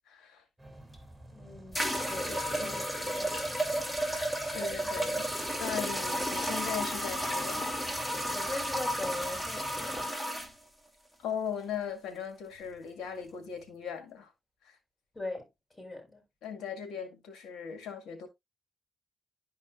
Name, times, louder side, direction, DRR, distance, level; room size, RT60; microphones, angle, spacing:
voice 1, 0.1-0.4 2.6-2.7 4.5-5.3 5.6-7.7 11.2-14.3 14.6-14.8 16.4-18.3, left 7 dB, 85° left, 2.0 m, -38 dB
sound 1, 0.6-10.1, right 1 dB, 5° right, 3.5 m, -51 dB
sound 2, 0.9-1.0 1.7-10.5, equal, 10° left, 2.5 m, -32 dB
voice 2, 1.3-3.8 8.3-10.1 15.1-15.5 15.7-16.2, left 2 dB, 30° left, 6.0 m, -41 dB
11.5 x 5.1 x 2.4 m
cardioid pair, 65°, 0 cm